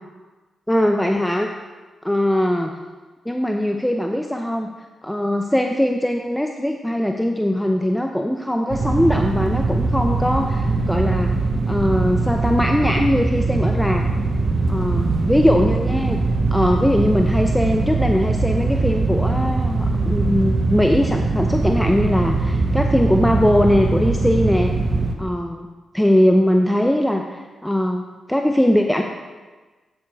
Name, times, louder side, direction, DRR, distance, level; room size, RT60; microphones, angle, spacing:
voice 1, 0.7-1.5 2.0-2.7 3.3-4.7 5.0-11.4 11.7-14.1 14.7-16.2 16.5-24.7 25.2-25.7 25.9-29.0, left 1 dB, 5° left, 3 dB, 0.6 m, -20 dB
sound 1, 8.7-25.2, right 3 dB, 55° right, 1.0 m, -21 dB
8.3 x 7.9 x 3.5 m, 1.3 s
supercardioid pair, 45°, 0 cm